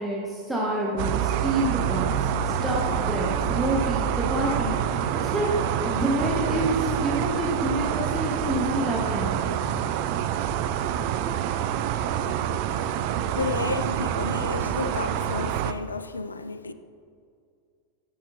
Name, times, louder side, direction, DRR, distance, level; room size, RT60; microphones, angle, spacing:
voice 1, 0.0-5.5 5.8-9.7, right 1 dB, ahead, 1.1 m, -28 dB
sound 1, 1.0-15.7, right 9 dB, 45° right, 0.3 m, -27 dB
voice 2, 13.2-16.7, left 4 dB, 75° left, 0.3 m, -32 dB
12.0 x 5.6 x 2.6 m
figure-of-eight pair, 90°, 0 cm